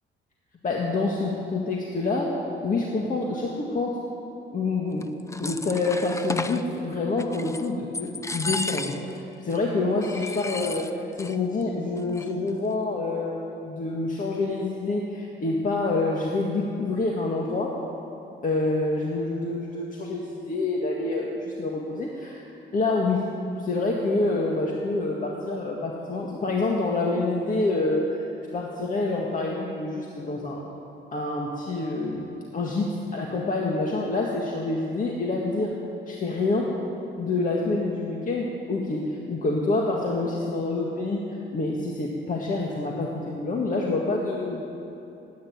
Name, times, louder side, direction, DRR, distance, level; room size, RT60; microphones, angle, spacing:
voice 1, 0.6-2.3 2.6-4.0 4.5-5.1 5.4-17.7 18.4-22.5 22.7-23.2 23.6-30.6 31.1-35.7 36.1-36.7 37.2-41.2 41.5-44.6, left 3 dB, 40° left, -2 dB, 1.9 m, -27 dB
sound 1, 5.0-6.6 7.2-7.7 7.9-9.2 9.5-9.6 10.0-11.4 11.6-11.7 12.0-12.5, left 2 dB, 15° left, 0.7 m, -33 dB
15.0 x 9.5 x 9.6 m, 2.9 s
cardioid pair, 90°, 20 cm